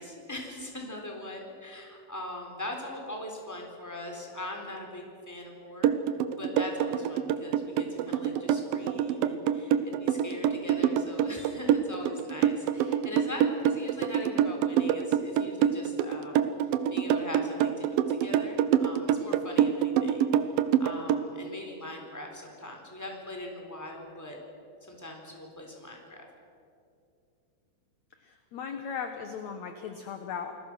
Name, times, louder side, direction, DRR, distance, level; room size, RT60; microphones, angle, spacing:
voice 1, 0.0-5.9 6.3-16.5 16.9-24.4 24.8-26.3, left 1 dB, 5° left, 1 dB, 3.5 m, -41 dB
sound 1, 5.8-21.2, right 10 dB, 75° right, 2.5 m, -25 dB
voice 2, 28.2-30.5, left 7 dB, 60° left, 6 dB, 2.1 m, -37 dB
29.0 x 20.0 x 6.3 m, 2.6 s
omnidirectional pair, 4.4 m